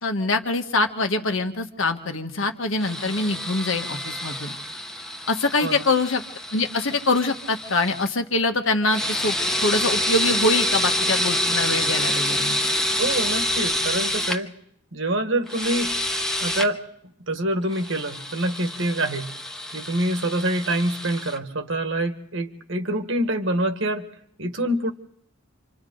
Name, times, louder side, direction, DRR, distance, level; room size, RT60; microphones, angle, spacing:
voice 1, 0.0-4.6 5.3-6.2 6.5-9.3 9.6-12.6, left 2 dB, 80° left, 5 dB, 1.5 m, -24 dB
sound 1, 2.8-8.1 8.9-14.4 15.5-16.7 17.7-21.4, left 1 dB, 5° left, 0.9 m, -27 dB
voice 2, 13.0-14.5 14.9-16.0 16.4-16.8 17.3-19.4 19.7-24.1 24.4-24.9, right 1 dB, 70° right, 7 dB, 1.6 m, -26 dB
28.5 x 26.0 x 3.9 m, 0.71 s
head